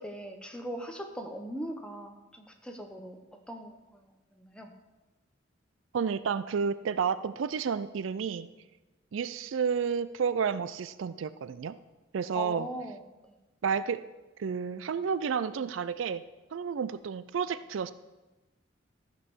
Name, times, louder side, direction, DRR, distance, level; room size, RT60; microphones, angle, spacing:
voice 1, 0.0-3.2 3.5-4.7 12.3-13.0 13.3-13.4, equal, 5° left, 4 dB, 1.0 m, -40 dB
voice 2, 5.9-8.5 9.1-11.8 12.1-12.7 13.6-14.0 14.4-16.2 16.5-17.9, right 6 dB, 70° right, 15 dB, 0.4 m, -31 dB
14.0 x 5.4 x 6.2 m, 1.1 s
head